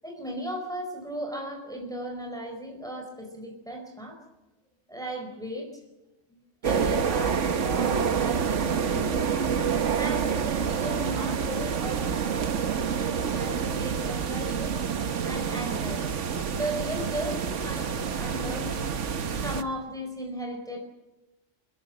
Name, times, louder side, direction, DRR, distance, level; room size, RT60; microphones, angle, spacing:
voice 1, 0.0-4.2 4.9-5.7 6.6-9.4 10.0-12.7 12.9-14.7 15.2-16.2 16.5-18.9 19.4-20.8, equal, 5° left, 1 dB, 4.8 m, -36 dB
sound 1, 6.6-19.6, right 7 dB, 85° right, 1.4 m, -28 dB
24.5 x 21.0 x 7.5 m, 0.99 s
omnidirectional pair, 1.2 m